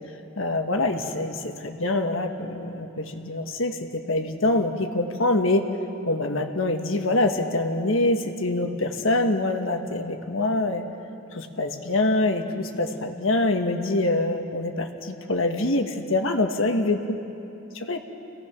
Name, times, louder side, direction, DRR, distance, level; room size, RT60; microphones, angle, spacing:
voice 1, 0.4-5.6 6.0-10.8 11.3-17.2 17.7-18.0, left 2 dB, 70° left, 5 dB, 1.6 m, -25 dB
28.5 x 17.5 x 6.1 m, 2.9 s
head